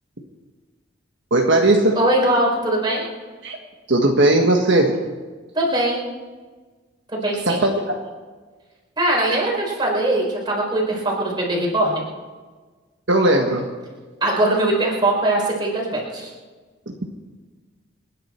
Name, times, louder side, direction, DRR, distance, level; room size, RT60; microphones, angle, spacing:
voice 1, 1.3-2.0 3.4-3.6 3.9-4.9 7.5-7.7 13.1-13.7, right 2 dB, 65° right, 1 dB, 1.6 m, -17 dB
voice 2, 1.9-3.0 5.5-6.0 7.1-7.6 9.0-12.0 14.2-16.3, right 1 dB, 20° right, -2 dB, 4.4 m, -21 dB
27.5 x 10.5 x 4.5 m, 1.4 s
head